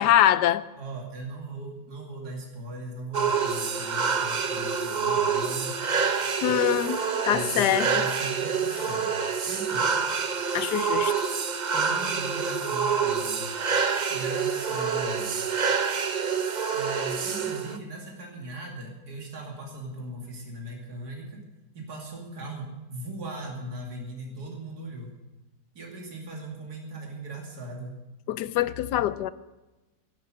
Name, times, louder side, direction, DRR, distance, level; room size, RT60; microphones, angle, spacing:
voice 1, 0.0-0.6 6.4-7.9 10.5-11.1 28.3-29.3, left 12 dB, 85° left, 1.3 m, -24 dB
voice 2, 0.8-5.8 7.3-9.1 9.5-9.9 11.7-13.4 14.1-15.7 16.7-21.4 21.7-25.1 25.7-27.9, right 1 dB, 70° right, 3.1 m, -39 dB
sound 1, 3.1-17.8, right 6 dB, 40° right, 0.6 m, -27 dB
12.5 x 11.5 x 7.8 m
omnidirectional pair, 1.7 m